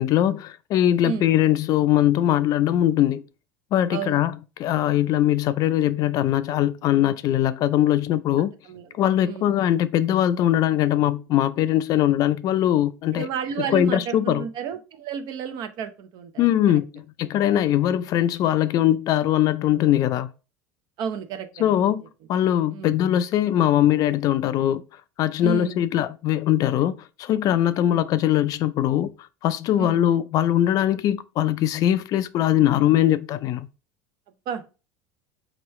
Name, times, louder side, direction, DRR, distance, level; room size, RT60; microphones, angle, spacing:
voice 1, 0.0-3.2 3.7-8.5 9.0-13.3 13.6-14.4 16.4-20.3 21.6-22.0 22.3-24.8 25.2-29.1 29.4-33.7, left 12 dB, 45° left, 0.3 m, -21 dB
voice 2, 3.9-4.2 8.6-9.0 9.2-9.5 13.1-16.5 17.5-17.8 21.0-21.9 22.7-23.0 25.4-25.8 27.8-28.0 29.8-30.0 34.5-34.6, right 7 dB, 55° right, 0.7 m, -32 dB
4.6 x 3.0 x 3.1 m
supercardioid pair, 115°, 8 cm